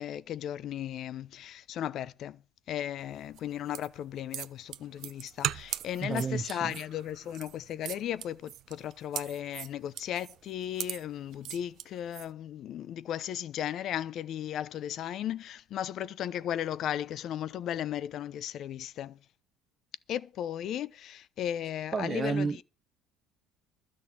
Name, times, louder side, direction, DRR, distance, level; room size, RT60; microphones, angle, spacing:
voice 1, 0.0-2.4 2.7-19.2 20.1-22.6, left 10 dB, 55° left, 0.8 m, -36 dB
sound 1, 3.3-12.3, right 13 dB, 60° right, 0.7 m, -39 dB
voice 2, 6.0-6.7 21.9-22.6, right 5 dB, 30° right, 0.9 m, -31 dB
12.5 x 6.4 x 8.6 m
cardioid pair, 115°, 0 cm